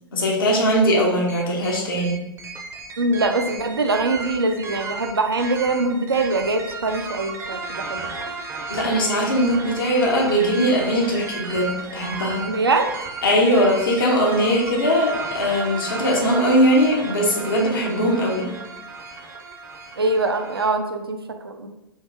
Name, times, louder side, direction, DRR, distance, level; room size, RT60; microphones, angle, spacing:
voice 1, 0.1-2.2 8.7-12.4 13.2-18.5, equal, 65° left, -3 dB, 0.9 m, -20 dB
sound 1, 1.3-20.7, right 4 dB, 20° right, 0.5 m, -34 dB
voice 2, 3.0-8.1 12.4-12.9 20.0-21.2 21.4-21.7, right 2 dB, 85° right, 6 dB, 0.4 m, -23 dB
3.7 x 2.5 x 2.6 m, 0.91 s
figure-of-eight pair, 100°, 12 cm